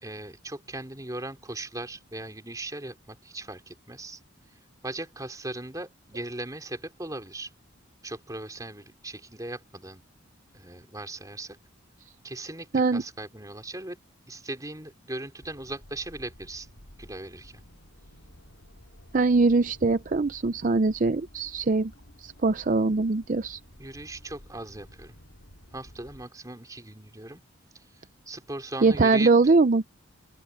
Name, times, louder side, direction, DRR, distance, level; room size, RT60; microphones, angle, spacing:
voice 1, 0.0-4.2 4.8-7.5 8.0-10.0 10.5-11.6 12.2-14.0 14.3-16.7 17.0-17.6 23.8-25.1 25.7-27.4 27.7-27.8 28.3-29.3, right 2 dB, 15° right, 3.1 m, -38 dB
sound 1, 15.4-26.3, equal, 65° left, 3.9 m, -52 dB
voice 2, 19.1-21.9 22.2-23.6 28.8-29.8, right 3 dB, 40° right, 0.5 m, -22 dB
open air
head